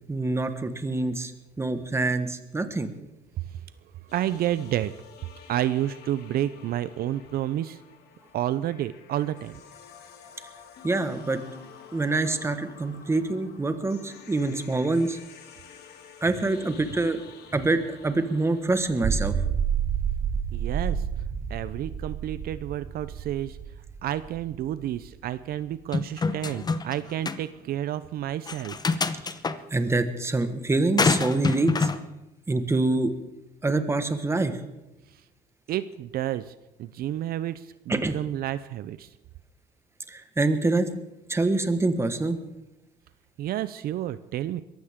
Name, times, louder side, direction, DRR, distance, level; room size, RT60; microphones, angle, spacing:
voice 1, 0.1-1.3 1.6-2.9 10.8-11.4 11.9-15.2 16.2-17.2 17.5-19.3 29.7-31.9 32.5-33.1 33.6-34.6 37.9-38.1 40.1-40.9 41.3-42.4, right 2 dB, 15° right, 9 dB, 1.4 m, -25 dB
voice 2, 4.0-4.9 5.5-7.8 8.3-9.6 20.5-21.1 21.5-23.6 24.0-28.8 35.1-35.2 35.7-39.1 43.4-44.6, right 12 dB, 65° right, 14 dB, 0.6 m, -30 dB
sound 1, 4.1-18.6, left 7 dB, 70° left, 2.5 m, -49 dB
sound 2, 18.8-25.3, right 7 dB, 40° right, 1.0 m, -30 dB
sound 3, 25.9-27.0 27.3-27.4 28.5-29.6 31.0-32.0, left 4 dB, 25° left, 0.9 m, -25 dB
22.0 x 15.5 x 3.7 m, 0.97 s
cardioid pair, 110°, 17 cm